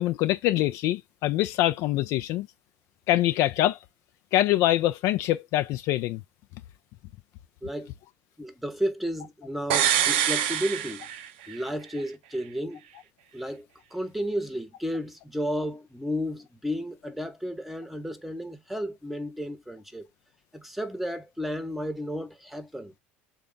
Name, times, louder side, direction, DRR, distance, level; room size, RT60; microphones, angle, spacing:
voice 1, 0.0-2.5 3.1-3.8 4.3-6.2, left 15 dB, 60° left, 0.4 m, -24 dB
voice 2, 7.6-7.9 8.4-11.1 11.5-12.8 13.3-13.7 13.9-20.0 20.5-22.9, equal, ahead, 0.9 m, -32 dB
sound 1, 9.7-11.6 11.9-12.0, right 10 dB, 80° right, 0.5 m, -25 dB
3.4 x 2.3 x 3.8 m
hypercardioid pair, 80°, 6 cm